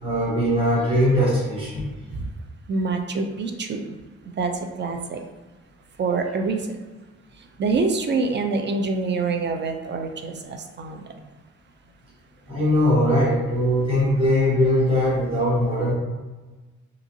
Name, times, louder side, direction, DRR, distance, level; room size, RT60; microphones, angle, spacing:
voice 1, 0.0-1.9 12.5-15.9, equal, 20° right, -7 dB, 1.0 m, -20 dB
voice 2, 2.7-4.0 4.4-5.2 6.0-6.8 7.4-11.0, right 4 dB, 40° right, 4 dB, 0.4 m, -26 dB
2.8 x 2.4 x 2.6 m, 1.2 s
cardioid pair, 90°, 30 cm